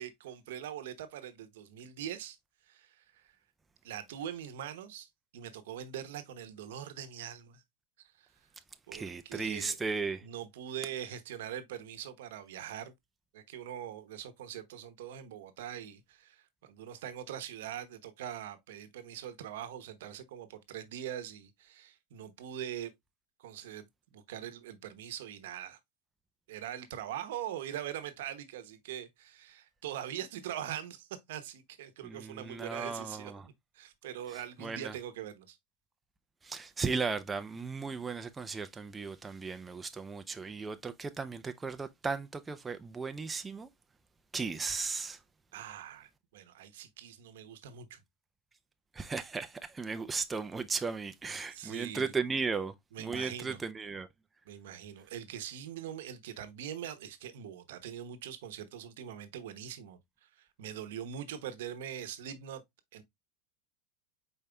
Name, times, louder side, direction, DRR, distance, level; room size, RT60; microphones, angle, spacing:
voice 1, 0.0-2.4 2.6-3.4 3.8-7.6 8.0-8.3 8.9-9.8 10.2-12.9 13.3-22.9 23.4-23.9 24.1-25.8 26.5-35.6 45.5-48.0 51.5-52.1 52.9-53.6 54.5-62.6 62.9-63.0, right 10 dB, 80° right, 0.9 m, -42 dB
voice 2, 8.9-10.3 32.0-33.4 34.6-34.9 36.4-43.7 44.3-45.2 48.9-54.1, right 4 dB, 15° right, 0.5 m, -36 dB
5.1 x 4.3 x 2.2 m
supercardioid pair, 125°, 0 cm